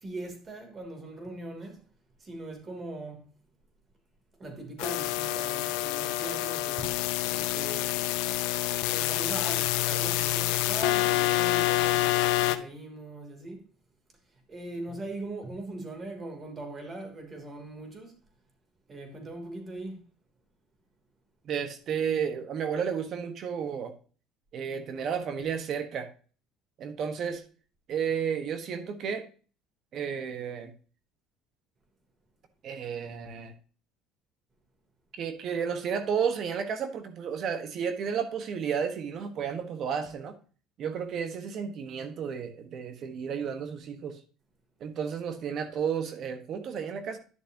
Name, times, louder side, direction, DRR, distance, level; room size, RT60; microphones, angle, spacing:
voice 1, 0.0-1.8 2.2-3.3 4.4-7.0 7.2-8.0 8.9-13.6 14.5-18.1 18.9-20.0, right 2 dB, 35° right, 3.1 m, -40 dB
sound 1, 4.8-12.6, left 16 dB, 80° left, 0.6 m, -27 dB
voice 2, 21.5-23.9 24.5-26.1 26.8-27.4 27.9-29.2 29.9-30.7 32.6-33.5 35.1-40.3 40.8-44.2 44.8-47.2, right 7 dB, 55° right, 1.2 m, -32 dB
10.5 x 6.8 x 2.9 m
supercardioid pair, 85°, 0 cm